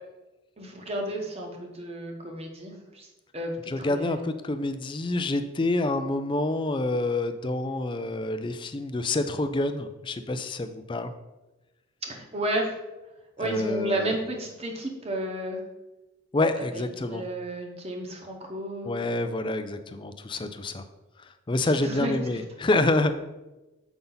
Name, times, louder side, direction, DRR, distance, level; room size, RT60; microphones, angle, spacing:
voice 1, 0.6-3.1 3.3-4.2 12.0-12.7 13.4-15.6 16.6-16.8 17.1-18.9 21.6-22.1, right 1 dB, 30° right, 2 dB, 1.0 m, -32 dB
voice 2, 3.7-11.1 13.4-14.1 16.3-17.2 18.8-20.8 21.5-23.2, left 2 dB, 25° left, 10 dB, 0.4 m, -27 dB
7.0 x 5.4 x 3.9 m, 1.1 s
head